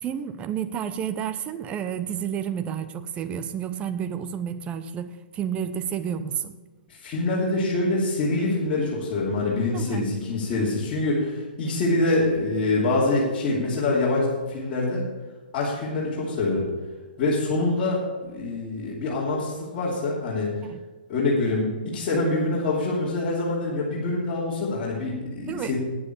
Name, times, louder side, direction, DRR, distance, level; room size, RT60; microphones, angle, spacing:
voice 1, 0.0-6.6 9.7-10.1 20.6-20.8 25.5-25.7, right 8 dB, 20° right, 12 dB, 0.7 m, -30 dB
voice 2, 6.9-15.0 15.5-16.7 17.2-20.5 21.1-25.8, left 2 dB, 35° left, -7 dB, 2.8 m, -25 dB
9.5 x 8.2 x 6.7 m, 1.3 s
hypercardioid pair, 130°, 5 cm